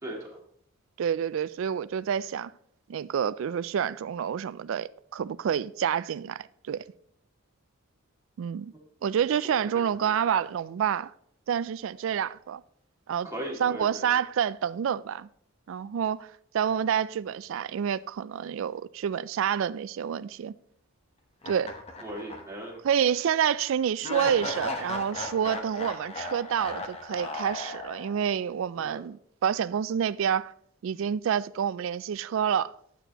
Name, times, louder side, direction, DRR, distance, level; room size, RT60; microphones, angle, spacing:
voice 1, 0.0-0.4 9.4-10.4 13.2-14.2 22.0-23.1 28.8-29.0, right 1 dB, 15° right, 2.1 m, -39 dB
voice 2, 1.0-2.5 2.9-6.8 8.4-8.7 9.0-11.1 11.5-12.6 13.1-13.3 13.6-15.3 15.7-20.5 21.5-21.7 22.8-30.5 30.8-32.7, right 8 dB, 70° right, 0.3 m, -28 dB
sound 1, 21.4-22.7 23.1-23.2 24.0-28.3, left 2 dB, 30° left, 0.9 m, -36 dB
9.1 x 8.3 x 2.9 m
head